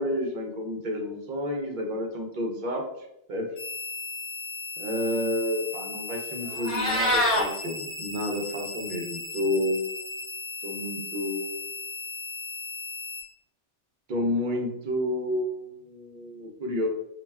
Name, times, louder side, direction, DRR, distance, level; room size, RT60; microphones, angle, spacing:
voice 1, 0.0-2.8 3.3-3.5 4.8-10.0 10.6-11.7 14.1-16.9, left 1 dB, 60° right, 1 dB, 0.5 m, -30 dB
sound 1, 3.6-13.2, left 4 dB, 75° left, 1.0 m, -37 dB
Meow, 6.5-7.4, left 1 dB, 5° right, 1.0 m, -24 dB
2.3 x 2.2 x 3.2 m, 0.82 s
omnidirectional pair, 1.2 m